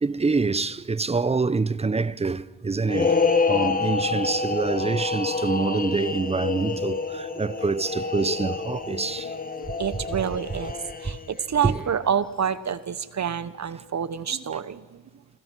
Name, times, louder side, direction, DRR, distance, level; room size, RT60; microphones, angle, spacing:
voice 1, 0.0-3.2 3.5-9.3 11.6-11.8, right 4 dB, 15° right, 0.7 m, -26 dB
sound 1, 2.8-11.4, left 4 dB, 25° left, 1.7 m, -27 dB
voice 2, 9.6-10.8 11.0-15.0, right 8 dB, 50° right, 1.1 m, -28 dB
27.5 x 25.0 x 4.6 m
cardioid pair, 75°, 37 cm